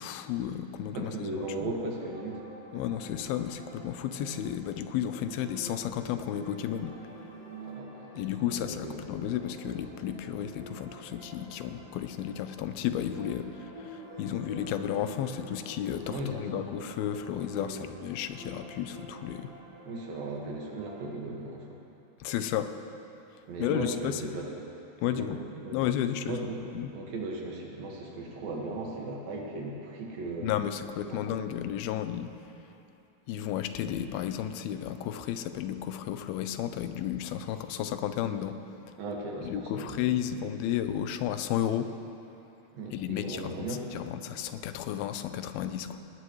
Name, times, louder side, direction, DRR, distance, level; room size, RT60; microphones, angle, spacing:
voice 1, 0.0-1.7 2.7-7.0 8.2-19.5 22.2-22.7 23.6-24.3 25.0-25.4 25.7-26.4 26.7-26.9 30.4-32.3 33.3-38.6 38.9-39.0 39.4-41.9 42.9-46.0, left 10 dB, 90° left, 9 dB, 2.6 m, -33 dB
voice 2, 1.0-2.4 7.6-9.0 16.1-16.6 17.6-17.9 19.9-21.8 23.5-24.5 25.0-25.3 25.6-25.8 26.3-26.6 26.9-30.5 31.1-31.2 39.0-40.0 42.7-43.8, right 2 dB, 70° right, -1 dB, 3.5 m, -37 dB
sound 1, 1.9-21.1, right 1 dB, 35° right, 1.9 m, -48 dB
19.5 x 19.0 x 3.2 m, 2.8 s
omnidirectional pair, 4.3 m